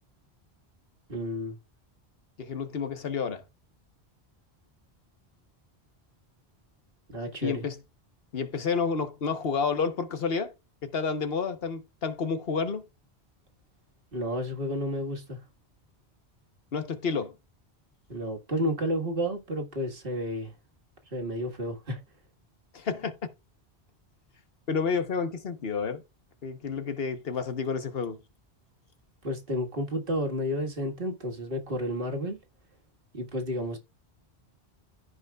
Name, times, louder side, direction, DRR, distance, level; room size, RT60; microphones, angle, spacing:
voice 1, 1.1-1.6 7.1-7.6 14.1-15.4 18.1-20.5 21.1-22.0 29.2-32.4 33.1-33.8, equal, 55° right, 2.0 m, -31 dB
voice 2, 2.4-3.4 7.4-7.8 8.3-10.5 10.8-12.8 16.7-17.3 22.7-23.1 24.7-26.0 26.4-28.2, left 5 dB, 60° left, 1.3 m, -30 dB
15.0 x 5.2 x 2.4 m
omnidirectional pair, 1.1 m